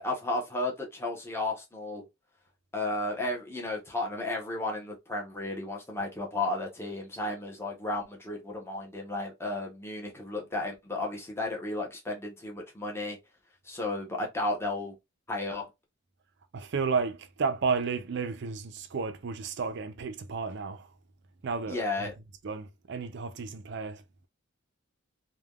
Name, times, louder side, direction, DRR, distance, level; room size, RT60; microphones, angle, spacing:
voice 1, 0.0-2.0 2.7-13.2 13.6-15.0 15.3-15.7 21.7-22.1, left 2 dB, 10° left, 0.8 m, -33 dB
voice 2, 16.5-20.9 21.4-21.8 22.4-24.3, right 5 dB, 55° right, 0.4 m, -32 dB
3.3 x 2.2 x 2.3 m
head